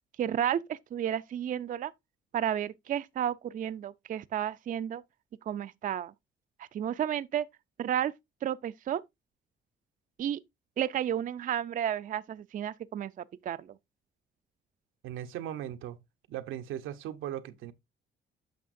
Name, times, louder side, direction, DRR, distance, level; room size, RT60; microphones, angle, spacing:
voice 1, 0.2-1.9 2.3-5.0 5.5-6.1 6.6-7.5 7.8-8.1 8.4-9.0 10.2-10.4 10.8-13.7, right 10 dB, 45° right, 0.4 m, -32 dB
voice 2, 15.0-16.0 16.3-17.7, right 11 dB, 90° right, 0.8 m, -38 dB
9.2 x 6.1 x 2.5 m
cardioid pair, 90°, 20 cm